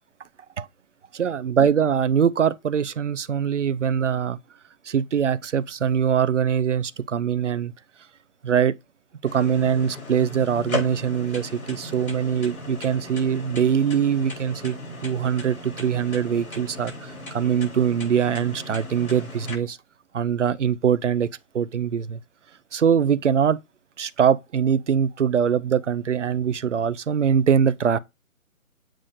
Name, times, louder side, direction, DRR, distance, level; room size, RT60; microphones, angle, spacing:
voice 1, 1.1-4.4 4.8-7.7 8.4-8.7 9.2-14.8 15.0-19.8 20.1-21.3 21.5-22.2 22.7-23.6 24.0-28.0, right 8 dB, 55° right, 0.6 m, -22 dB
sound 1, 9.3-19.5, left 2 dB, 75° left, 3.9 m, -36 dB
7.6 x 4.7 x 2.7 m
figure-of-eight pair, 145°, 43 cm